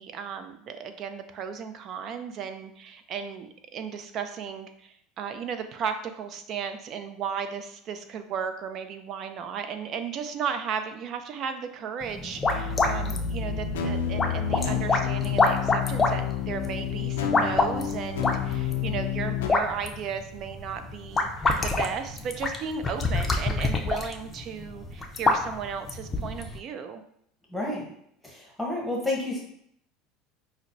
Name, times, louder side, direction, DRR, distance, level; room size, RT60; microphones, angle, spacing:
voice 1, 0.0-27.0, right 7 dB, 50° right, 8 dB, 0.4 m, -35 dB
sound 1, 12.0-26.6, left 3 dB, 25° left, 0.5 m, -28 dB
sound 2, 12.4-19.5, left 8 dB, 90° left, 0.4 m, -29 dB
voice 2, 27.5-27.9 28.2-29.4, left 2 dB, ahead, -3 dB, 1.0 m, -30 dB
5.5 x 2.0 x 2.6 m, 0.70 s
supercardioid pair, 100°, 0 cm